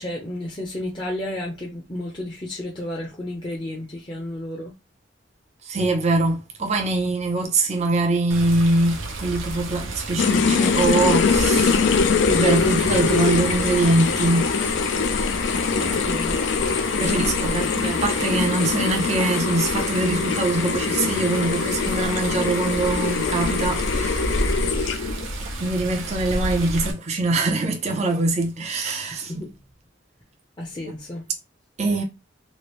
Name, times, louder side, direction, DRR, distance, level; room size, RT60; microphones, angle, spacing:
voice 1, 0.0-4.7 16.0-16.5 29.2-29.5 30.6-31.2, left 1 dB, 25° left, 0.6 m, -32 dB
voice 2, 5.6-12.0 12.2-14.8 17.0-24.3 24.9-25.0 25.4-29.3 31.8-32.0, right 2 dB, 35° right, 0.6 m, -23 dB
Water, 8.3-26.9, right 1 dB, 90° right, 0.7 m, -31 dB
sound 1, 10.2-25.3, left 5 dB, 65° left, 0.3 m, -23 dB
3.1 x 2.5 x 3.0 m
head